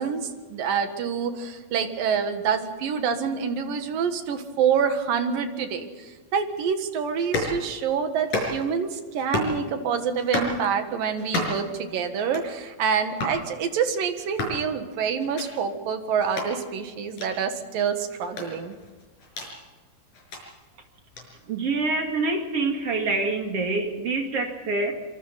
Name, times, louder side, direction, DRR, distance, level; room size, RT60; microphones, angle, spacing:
voice 1, 0.0-18.7, right 6 dB, 80° right, 7 dB, 3.4 m, -27 dB
sound 1, 7.2-7.6 8.2-8.7 9.2-9.6 10.2-10.6 11.2-11.7 12.2-12.5 13.2-13.4 14.2-14.6 15.2-15.5 16.2-16.5 17.2-17.3 18.2-19.5 20.1-20.4 21.2-21.3, left 2 dB, 65° left, 7.2 m, -30 dB
voice 2, 21.5-24.9, right 3 dB, 45° right, 3 dB, 2.8 m, -26 dB
26.0 x 25.5 x 4.2 m, 1.4 s
omnidirectional pair, 4.0 m